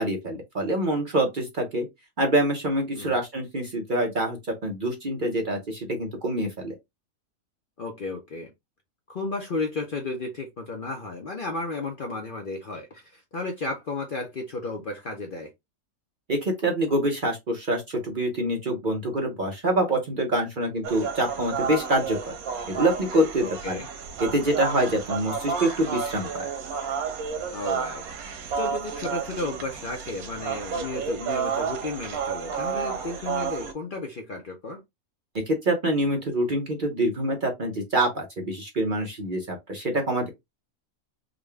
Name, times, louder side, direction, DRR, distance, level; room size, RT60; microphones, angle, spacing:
voice 1, 0.0-1.9 2.2-6.7 16.3-22.2 22.7-23.8 24.2-26.5 35.5-40.3, right 1 dB, 45° right, 0.8 m, -26 dB
voice 2, 7.8-8.5 9.1-15.5 23.4-23.9 27.5-28.0 28.5-34.8, left 3 dB, 50° left, 0.7 m, -33 dB
sound 1, 20.8-33.7, right 6 dB, 90° right, 1.3 m, -31 dB
3.7 x 2.2 x 3.2 m
omnidirectional pair, 1.5 m